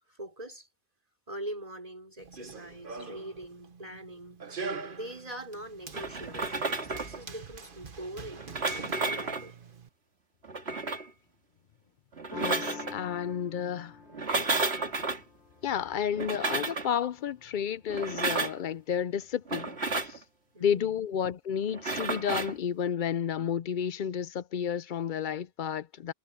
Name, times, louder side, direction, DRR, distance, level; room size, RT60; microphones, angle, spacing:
voice 1, 0.1-0.7 1.3-4.4 4.9-9.6 20.5-21.0, right 1 dB, 35° right, 5.5 m, -43 dB
Run, 2.2-9.9, right 4 dB, 50° right, 1.5 m, -43 dB
sound 1, 5.9-7.2 8.3-9.5 10.4-11.1 12.1-13.0 14.1-15.2 16.1-16.9 17.9-18.6 19.5-20.2 21.7-22.6, right 3 dB, 65° right, 2.7 m, -32 dB
sound 2, 12.3-17.9, left 3 dB, 75° left, 3.2 m, -47 dB
voice 2, 12.3-14.0 15.6-19.8 20.0-20.2 20.6-26.1, left 8 dB, 55° left, 0.6 m, -31 dB
omnidirectional pair, 1.1 m